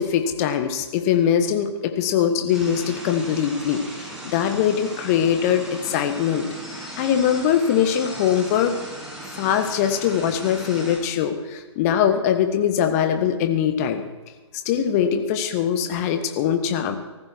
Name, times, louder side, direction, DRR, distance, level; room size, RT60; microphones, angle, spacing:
voice 1, 0.0-6.5 7.0-8.8 9.3-14.0 14.6-17.0, left 8 dB, 30° left, 8 dB, 1.7 m, -22 dB
sound 1, 2.5-11.0, right 1 dB, 5° right, 5.0 m, -37 dB
18.5 x 15.0 x 4.7 m, 1.2 s
figure-of-eight pair, 135°, 16 cm